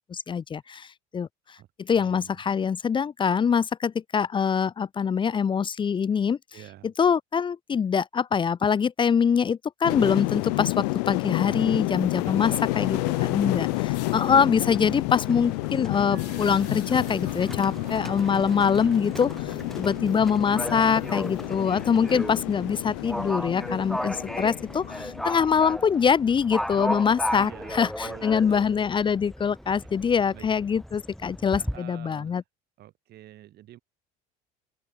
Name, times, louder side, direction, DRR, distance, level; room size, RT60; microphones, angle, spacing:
voice 1, 0.1-0.9 1.1-1.3 1.8-6.4 7.0-32.4, left 6 dB, 25° left, 0.5 m, -24 dB
voice 2, 1.6-2.3 6.5-6.9 12.2-13.4 19.8-20.2 27.0-28.8 30.3-30.5 31.5-32.4 32.8-33.8, right 13 dB, 55° right, 2.5 m, -47 dB
sound 1, 9.8-26.3 26.6-27.0, left 28 dB, 90° left, 0.6 m, -30 dB
Livestock farm animals working animals, 12.4-31.8, equal, ahead, 4.7 m, -37 dB
sound 2, 12.4-22.9, right 22 dB, 70° right, 6.0 m, -47 dB
open air
supercardioid pair, 105°, 20 cm